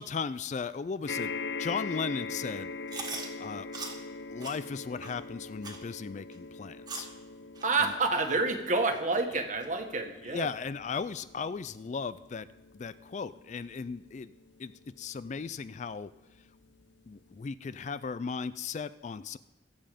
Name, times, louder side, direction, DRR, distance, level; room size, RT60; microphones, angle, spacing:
voice 1, 0.0-1.3 1.6-2.7 3.4-3.7 4.3-7.1 7.8-7.9 10.3-14.3 14.6-14.7 15.0-16.1 17.1-19.4, left 5 dB, 40° left, 15 dB, 0.3 m, -36 dB
sound 1, 1.1-15.6 16.4-16.5 16.7-16.8, left 4 dB, 80° left, 0.7 m, -42 dB
Chewing mastication, 2.9-3.3 3.7-3.9 4.4-4.6 5.0-5.1 5.6-5.8 6.3-6.4 6.9-7.1 7.6-7.7 8.3-8.4 8.9-9.0 9.6-9.7, right 4 dB, 25° right, 1.8 m, -40 dB
voice 2, 7.6-10.5, right 3 dB, 40° right, 5 dB, 1.6 m, -28 dB
22.0 x 7.7 x 5.1 m, 1.1 s
head